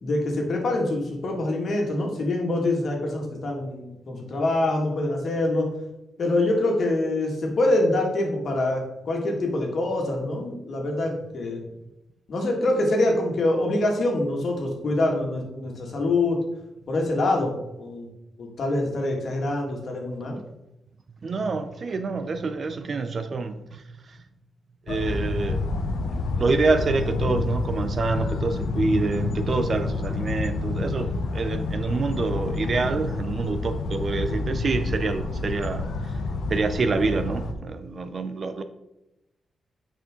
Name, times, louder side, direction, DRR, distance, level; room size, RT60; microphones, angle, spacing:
voice 1, 0.0-5.7 6.2-11.6 12.3-16.4 16.9-18.1 18.4-20.4, left 2 dB, 55° left, 0 dB, 2.0 m, -25 dB
voice 2, 21.2-23.8 24.1-24.2 24.9-25.8 26.2-35.9 36.5-38.6, right 3 dB, 45° right, 10 dB, 0.6 m, -27 dB
sound 1, 24.9-37.5, left 3 dB, 85° left, 0.8 m, -28 dB
9.3 x 5.0 x 3.8 m, 0.91 s
wide cardioid pair, 125°, 0 cm